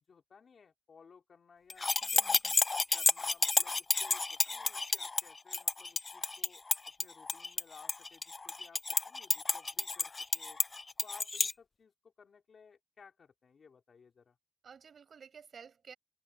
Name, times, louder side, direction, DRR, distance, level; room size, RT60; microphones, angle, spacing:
voice 1, 0.1-1.9 2.9-6.6 7.0-10.6 11.0-14.4, left 5 dB, 80° left, 3.6 m, -59 dB
sound 1, 1.7-11.5, left 3 dB, 45° left, 0.4 m, -31 dB
voice 2, 2.0-2.6 14.6-15.9, right 6 dB, 85° right, 7.9 m, -53 dB
cardioid pair, 65°, 0 cm